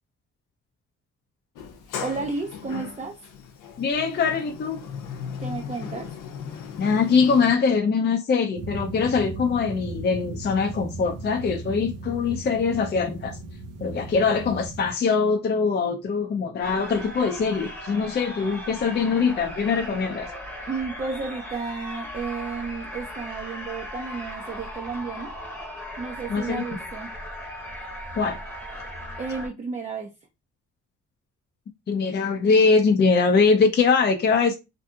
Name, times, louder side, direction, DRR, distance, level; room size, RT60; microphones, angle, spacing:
Sliding door, 1.6-7.5, left 7 dB, 90° left, 0.7 m, -37 dB
voice 1, 2.0-3.2 5.4-6.1 20.7-25.3 26.0-27.1 29.2-30.1, right 4 dB, 25° right, 0.5 m, -32 dB
voice 2, 3.8-4.8 6.8-13.4 13.8-20.3 26.3-26.6 28.1-28.4 31.9-34.6, left 5 dB, 35° left, 0.5 m, -22 dB
sound 1, 8.5-14.9, right 3 dB, 90° right, 0.7 m, -37 dB
sound 2, 16.6-29.5, equal, 5° left, 0.9 m, -37 dB
2.6 x 2.6 x 2.3 m
cardioid pair, 90°, 30 cm